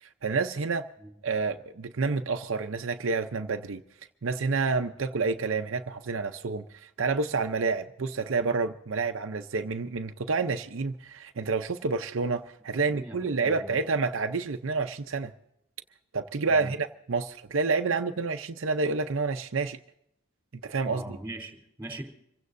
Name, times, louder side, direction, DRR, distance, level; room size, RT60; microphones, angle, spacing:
voice 1, 0.0-0.8 1.2-3.8 4.2-15.3 16.1-19.8 20.6-21.0, right 4 dB, 60° right, 0.6 m, -29 dB
voice 2, 13.4-13.8 16.5-16.7 20.9-22.0, right 1 dB, 10° right, 3.2 m, -40 dB
26.5 x 16.0 x 2.6 m
head